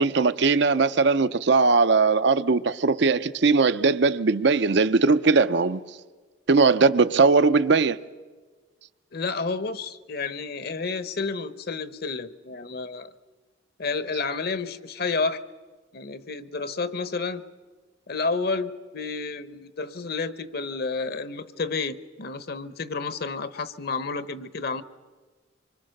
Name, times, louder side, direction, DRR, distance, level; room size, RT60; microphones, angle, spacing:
voice 1, 0.0-5.8 6.5-8.0, right 4 dB, 60° right, 0.6 m, -20 dB
voice 2, 9.1-13.1 13.8-15.4 15.9-17.4 18.1-24.8, left 4 dB, 55° left, 0.9 m, -30 dB
25.5 x 24.0 x 6.6 m
head